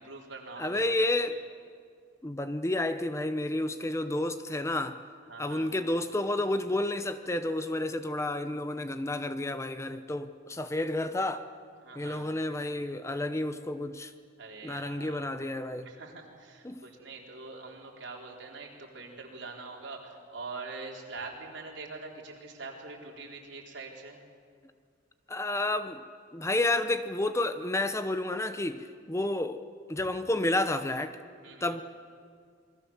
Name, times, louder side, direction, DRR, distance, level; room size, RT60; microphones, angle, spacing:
voice 1, 0.0-1.3 5.3-5.7 11.8-12.3 14.4-15.2 15.8-24.2 31.4-31.8, right 3 dB, 70° right, 4.2 m, -44 dB
voice 2, 0.6-1.3 2.2-5.0 5.4-11.5 11.9-14.1 14.6-15.9 16.6-16.8 25.3-26.0 26.3-29.6 29.9-31.2 31.6-31.8, left 2 dB, 15° left, 0.8 m, -30 dB
27.5 x 22.0 x 7.3 m
head